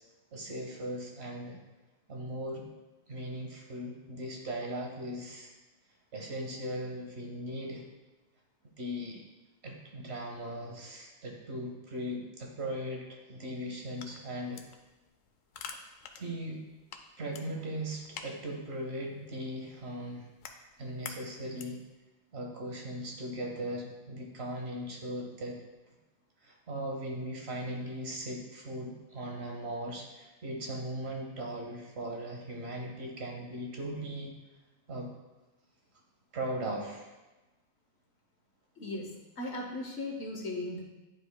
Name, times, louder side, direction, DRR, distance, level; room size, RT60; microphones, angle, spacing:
voice 1, 0.3-1.6 2.1-2.6 3.1-5.5 6.1-7.8 8.8-9.2 9.6-14.6 16.2-16.6 17.2-20.2 20.8-21.8 22.3-25.6 26.4-34.3 34.9-35.1 36.3-37.1, right 1 dB, 55° right, 0 dB, 1.3 m, -38 dB
sound 1, 13.7-21.9, left 6 dB, 85° left, 1.0 m, -49 dB
voice 2, 38.8-40.8, left 2 dB, 60° left, 0 dB, 1.1 m, -37 dB
9.5 x 5.0 x 2.2 m, 1.1 s
omnidirectional pair, 1.3 m